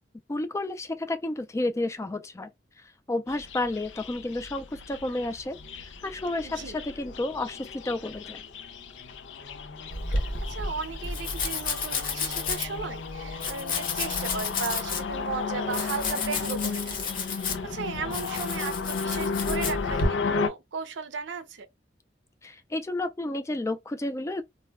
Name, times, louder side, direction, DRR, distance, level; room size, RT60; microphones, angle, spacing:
voice 1, 0.3-2.5 2.8-8.4 22.4-24.4, left 2 dB, 15° left, 0.3 m, -31 dB
sound 1, 3.3-20.5, left 4 dB, 90° left, 0.4 m, -34 dB
voice 2, 6.4-6.8 10.1-21.7, right 5 dB, 90° right, 0.5 m, -36 dB
Domestic sounds home sounds, 9.9-20.1, left 4 dB, 50° left, 0.8 m, -32 dB
2.2 x 2.1 x 3.3 m
head